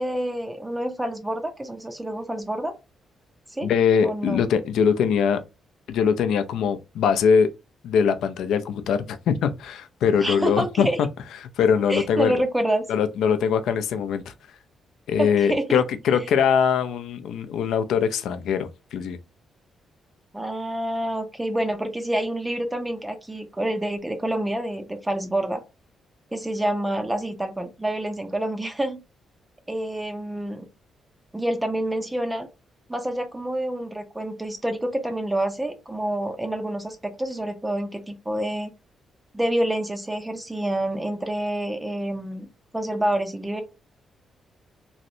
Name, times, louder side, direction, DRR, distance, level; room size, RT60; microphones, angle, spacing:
voice 1, 0.0-2.7 3.5-3.7 4.0-4.4 10.2-11.0 11.9-12.8 15.2-15.8 20.3-25.6 26.3-29.0 29.7-30.7 31.3-32.5 32.9-38.7 39.3-42.5 42.7-43.6, right 1 dB, 10° right, 0.4 m, -27 dB
voice 2, 3.6-5.4 5.9-7.5 7.8-10.9 11.4-12.4 12.9-14.3 15.1-19.2, left 7 dB, 85° left, 0.4 m, -22 dB
3.1 x 2.6 x 2.5 m
cardioid pair, 160°, 0 cm